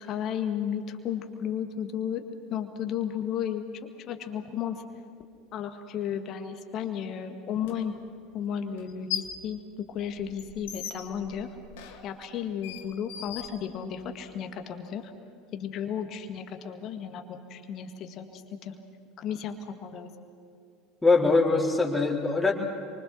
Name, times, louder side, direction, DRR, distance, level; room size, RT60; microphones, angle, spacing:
voice 1, 0.0-2.2 2.5-3.7 4.1-4.8 5.5-7.9 8.3-9.6 9.9-11.5 12.0-15.1 15.5-18.7 19.2-20.1, left 8 dB, 40° left, 6 dB, 1.9 m, -33 dB
sound 1, 7.6-7.7 8.8-9.5 9.8-14.2, left 10 dB, 60° left, 2.2 m, -39 dB
voice 2, 21.0-22.5, left 3 dB, 10° left, -2 dB, 4.0 m, -22 dB
28.0 x 24.5 x 6.2 m, 2.5 s
figure-of-eight pair, 70°, 0 cm